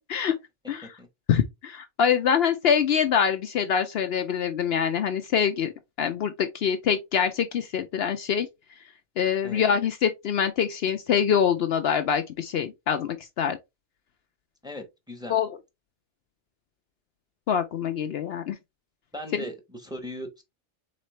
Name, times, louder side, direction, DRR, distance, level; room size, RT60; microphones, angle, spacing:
voice 1, 1.3-5.7 6.0-8.5 9.2-13.6 15.3-15.5 17.5-18.6 19.3-19.4, left 7 dB, 65° left, 0.8 m, -25 dB
voice 2, 14.6-15.4 19.1-20.4, equal, 5° right, 1.0 m, -38 dB
4.2 x 3.8 x 3.1 m
omnidirectional pair, 1.2 m